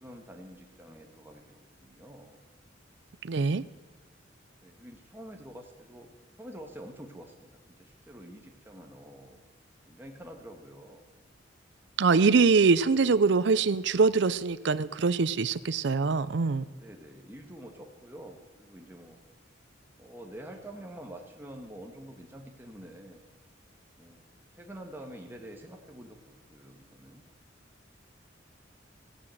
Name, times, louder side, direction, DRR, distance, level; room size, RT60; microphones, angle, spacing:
voice 1, 0.0-2.4 4.6-6.1 6.4-7.5 7.8-9.4 9.9-11.0 16.7-19.2 20.0-23.2 24.0-24.2 24.5-27.2, right 1 dB, 10° right, 2 dB, 1.7 m, -47 dB
voice 2, 3.2-3.6 12.0-16.6, right 4 dB, 65° right, 15 dB, 0.5 m, -23 dB
16.0 x 9.9 x 7.8 m, 1.3 s
head